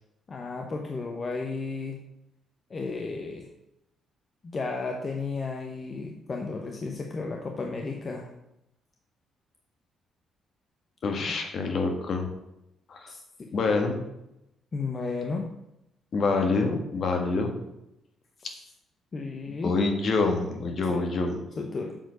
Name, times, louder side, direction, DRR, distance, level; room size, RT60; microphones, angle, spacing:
voice 1, 0.3-2.0 2.7-3.5 4.4-8.3 13.1-13.2 14.7-15.4 19.1-19.8 20.9-21.0 21.6-22.0, left 4 dB, 40° left, 2 dB, 1.0 m, -33 dB
voice 2, 11.0-12.3 12.9-13.1 13.5-14.0 16.1-17.5 19.5-21.4, left 3 dB, 60° left, 3 dB, 1.6 m, -26 dB
7.7 x 4.3 x 6.4 m, 0.86 s
cardioid pair, 75°, 0 cm